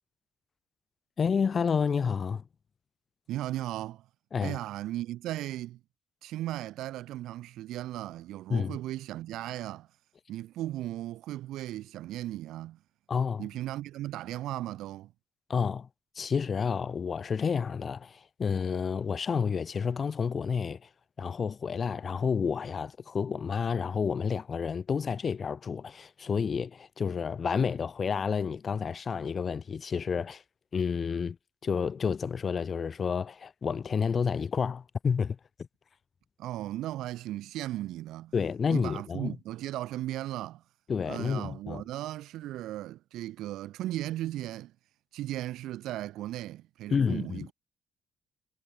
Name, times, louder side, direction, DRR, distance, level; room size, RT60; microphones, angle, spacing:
voice 1, 1.2-2.4 4.3-4.6 8.5-8.8 13.1-13.5 15.5-15.9 16.2-20.9 21.2-30.4 30.7-31.4 31.6-35.4 38.3-39.4 40.9-41.8 46.9-47.5, left 6 dB, 45° left, 0.7 m, -30 dB
voice 2, 3.3-4.1 4.4-5.8 6.2-9.9 10.3-12.8 13.4-15.1 36.4-38.3 38.7-40.6 41.1-44.7 45.1-47.5, right 14 dB, 85° right, 1.8 m, -36 dB
cardioid pair, 90°, 0 cm